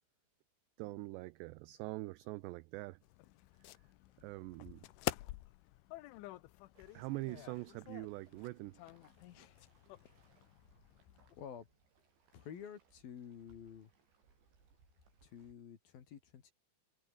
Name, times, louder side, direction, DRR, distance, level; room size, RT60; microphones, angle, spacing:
voice 1, 0.8-3.0 4.2-4.9 6.9-8.8, right 20 dB, 85° right, 2.5 m, -44 dB
sound 1, 3.0-11.5, left 17 dB, 80° left, 3.3 m, -48 dB
Waves surf, 6.7-15.5, right 5 dB, 65° right, 8.8 m, -71 dB
voice 2, 11.3-11.7 12.3-13.9 15.2-16.5, left 8 dB, 55° left, 3.8 m, -50 dB
omnidirectional pair, 5.7 m